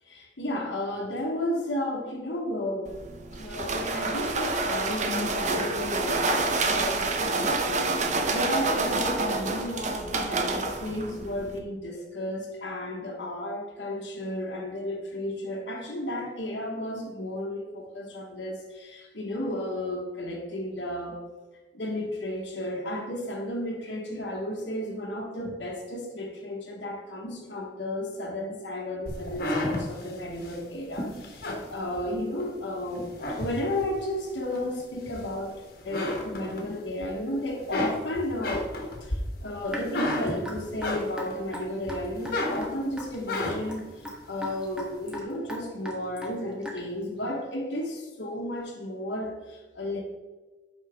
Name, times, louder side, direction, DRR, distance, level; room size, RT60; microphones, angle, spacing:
voice 1, 0.1-2.9 3.3-21.3 21.7-38.7 39.0-50.0, left 1 dB, 75° left, -1 dB, 1.2 m, -33 dB
sound 1, 2.8-11.6, right 3 dB, 40° right, 0.7 m, -28 dB
sound 2, 29.1-32.5 32.9-34.0 34.5-35.5 35.8-37.1 37.4-41.4 41.8-43.8, left 1 dB, 55° left, 1.4 m, -32 dB
Raindrop / Drip, 39.7-47.0, equal, 5° right, 1.2 m, -39 dB
8.6 x 5.6 x 3.5 m, 1.2 s
head